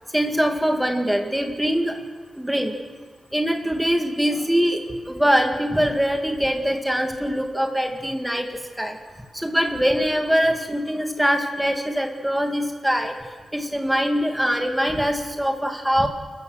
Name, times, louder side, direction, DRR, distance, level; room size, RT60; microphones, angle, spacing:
voice 1, 0.1-2.0 2.4-2.7 3.3-4.8 5.1-8.5 8.8-9.0 9.3-13.2 13.5-16.1, equal, 5° right, 4 dB, 2.1 m, -23 dB
29.0 x 14.5 x 6.5 m, 1.5 s
wide cardioid pair, 155°, 0 cm